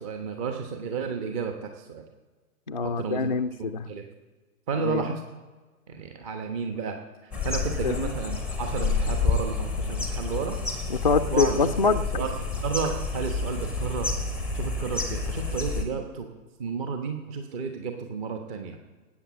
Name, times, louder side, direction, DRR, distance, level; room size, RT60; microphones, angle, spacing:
voice 1, 0.0-2.0 2.8-3.2 3.6-4.0 4.7-5.2 5.9-7.0 7.2-10.6 11.3-11.7 12.1-14.1 14.5-16.3 16.6-18.8, right 5 dB, 20° right, 5 dB, 1.1 m, -32 dB
voice 2, 2.7-3.9 4.8-5.1 7.8-8.1 10.9-12.0, left 4 dB, 35° left, 8 dB, 0.4 m, -25 dB
sound 1, 7.3-15.8, left 4 dB, 5° right, 0.8 m, -29 dB
18.5 x 8.6 x 7.1 m, 1.3 s
figure-of-eight pair, 125°, 45 cm